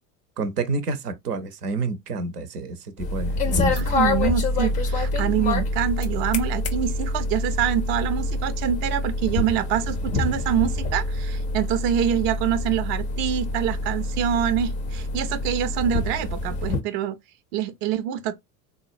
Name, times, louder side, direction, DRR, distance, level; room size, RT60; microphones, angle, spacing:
voice 1, 0.4-4.0, right 3 dB, 80° right, 0.7 m, -29 dB
sound 1, 3.0-16.8, left 2 dB, 20° left, 0.3 m, -26 dB
voice 2, 3.7-17.2 17.5-18.3, right 9 dB, 45° right, 0.5 m, -25 dB
3.8 x 2.1 x 2.4 m
figure-of-eight pair, 75°, 46 cm